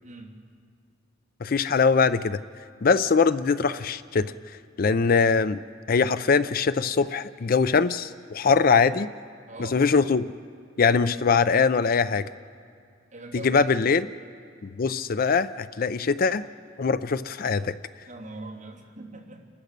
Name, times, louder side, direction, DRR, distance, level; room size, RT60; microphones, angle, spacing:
voice 1, 0.0-0.4 9.4-9.8 13.1-14.0 18.1-19.5, right 2 dB, 40° right, -3 dB, 3.1 m, -42 dB
voice 2, 1.4-2.4 2.8-4.3 4.8-5.6 5.9-9.1 9.7-10.2 10.8-12.3 13.4-14.0 14.6-16.4 16.8-17.7, left 5 dB, 50° left, 14 dB, 0.5 m, -22 dB
29.5 x 14.5 x 6.7 m, 2.3 s
head